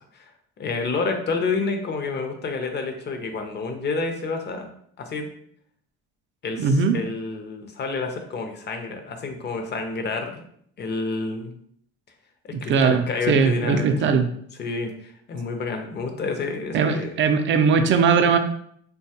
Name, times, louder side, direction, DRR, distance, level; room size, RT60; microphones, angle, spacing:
voice 1, 0.6-4.7 5.0-5.3 6.4-10.4 10.8-11.5 12.4-14.1 14.6-17.1, left 4 dB, 35° left, 5 dB, 0.6 m, -29 dB
voice 2, 6.6-7.0 12.7-14.3 16.7-18.4, right 5 dB, 40° right, 8 dB, 0.4 m, -19 dB
2.8 x 2.3 x 2.8 m, 0.66 s
supercardioid pair, 80°, 29 cm